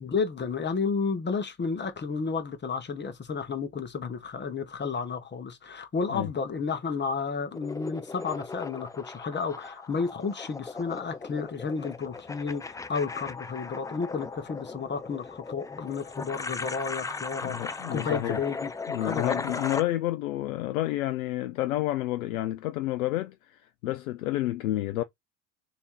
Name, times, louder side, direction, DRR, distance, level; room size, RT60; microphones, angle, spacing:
voice 1, 0.0-18.7 19.0-19.6, left 5 dB, 25° left, 1.2 m, -32 dB
sound 1, 7.5-19.8, left 4 dB, 10° left, 0.4 m, -37 dB
voice 2, 17.4-18.4 18.9-25.0, left 15 dB, 85° left, 0.5 m, -30 dB
3.4 x 3.0 x 4.6 m
hypercardioid pair, 70°, 41 cm